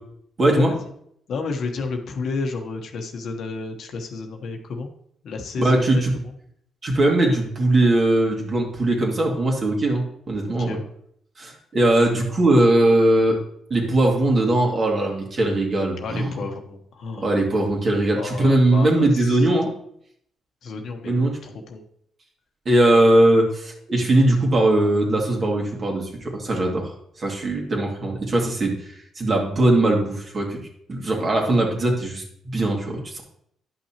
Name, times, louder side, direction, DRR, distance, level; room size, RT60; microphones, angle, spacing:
voice 1, 0.4-0.7 5.6-6.1 6.8-10.8 11.4-13.4 13.7-16.3 17.2-19.7 21.0-21.3 22.7-30.6 30.9-33.2, right 1 dB, 40° right, 0 dB, 2.2 m, -20 dB
voice 2, 1.3-4.9 5.2-6.3 10.4-10.8 16.0-17.4 18.1-19.4 20.6-21.8, left 4 dB, 65° left, 4 dB, 1.1 m, -31 dB
10.5 x 5.8 x 2.9 m, 0.69 s
cardioid pair, 90°, 0 cm